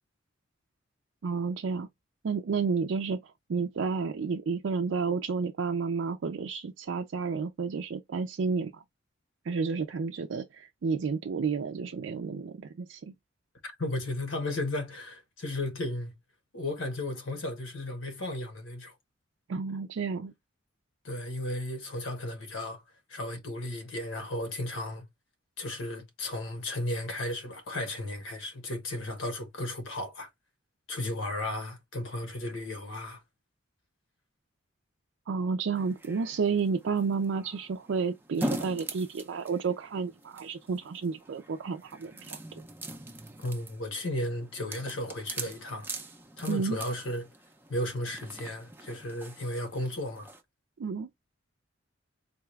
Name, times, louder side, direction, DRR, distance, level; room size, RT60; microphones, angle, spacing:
voice 1, 1.2-1.9 2.2-3.2 3.5-8.8 9.4-13.1 19.5-20.3 35.3-42.4 46.5-46.8 50.8-51.1, right 5 dB, 70° right, 0.4 m, -31 dB
voice 2, 13.6-16.1 16.5-18.9 21.0-22.8 23.1-25.0 25.6-30.3 30.9-33.2 43.4-45.9 46.4-47.3 47.7-50.3, left 1 dB, 80° left, 1.1 m, -34 dB
sound 1, 35.8-50.4, right 1 dB, 10° right, 0.4 m, -42 dB
4.0 x 2.3 x 3.1 m
head